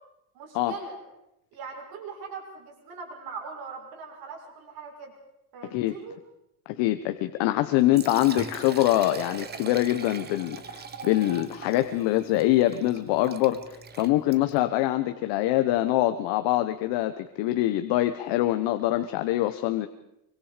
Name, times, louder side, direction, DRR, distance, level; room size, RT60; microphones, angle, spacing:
voice 1, 0.3-1.0 1.5-5.1 5.5-6.2, right 5 dB, 60° right, 1 dB, 6.5 m, -41 dB
voice 2, 6.7-13.6 14.0-19.9, left 15 dB, 90° left, 8 dB, 1.3 m, -24 dB
Liquid, 7.8-14.7, right 5 dB, 25° right, 1.2 m, -41 dB
24.5 x 24.0 x 5.1 m, 0.85 s
cardioid pair, 175°, 41 cm